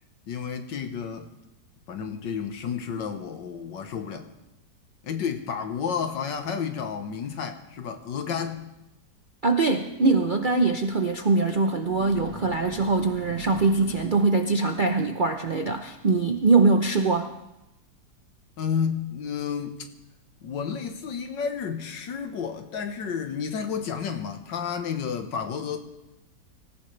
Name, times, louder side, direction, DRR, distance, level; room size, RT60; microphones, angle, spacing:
voice 1, 0.3-1.3 1.9-4.3 5.0-8.7 18.6-19.9 20.4-25.8, left 7 dB, 85° left, 7 dB, 1.9 m, -31 dB
voice 2, 9.4-17.3, right 3 dB, 55° right, 5 dB, 0.5 m, -22 dB
sound 1, 10.0-10.1 10.4-10.5 11.4-11.5 11.8-14.0, right 2 dB, 75° right, 2.7 m, -42 dB
24.5 x 15.0 x 3.3 m, 0.94 s
omnidirectional pair, 1.9 m